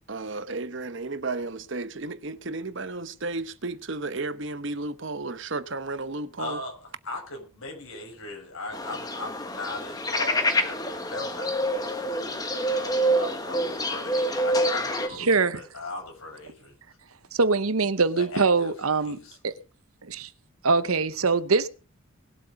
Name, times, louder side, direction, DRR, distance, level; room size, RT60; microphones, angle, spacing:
voice 1, 0.0-6.6, right 3 dB, 60° right, 1.0 m, -33 dB
voice 2, 6.4-16.7 18.2-18.7 19.0-19.4, left 2 dB, 80° left, 6.6 m, -39 dB
sound 1, 8.7-15.1, equal, 15° left, 1.4 m, -27 dB
voice 3, 15.2-15.6 17.3-19.2 19.4-19.5 20.0-20.3 20.6-21.7, right 4 dB, 85° right, 1.0 m, -23 dB
20.0 x 8.0 x 5.4 m
head